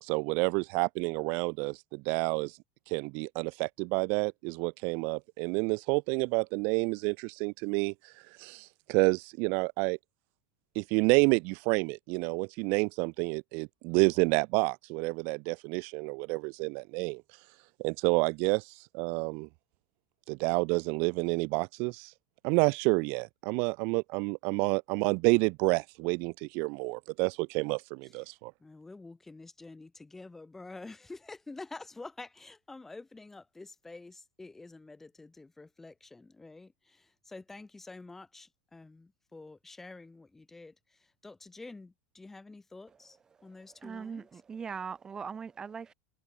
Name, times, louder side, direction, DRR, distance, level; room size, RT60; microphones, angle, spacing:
voice 1, 0.0-2.6 2.9-10.0 10.7-19.5 20.3-22.1 22.4-28.5, right 32 dB, 40° right, 1.0 m, -29 dB
voice 2, 28.6-44.3, left 3 dB, 5° left, 7.7 m, -48 dB
voice 3, 43.4-45.9, right 6 dB, 15° right, 5.9 m, -41 dB
supercardioid pair, 180°, 5 cm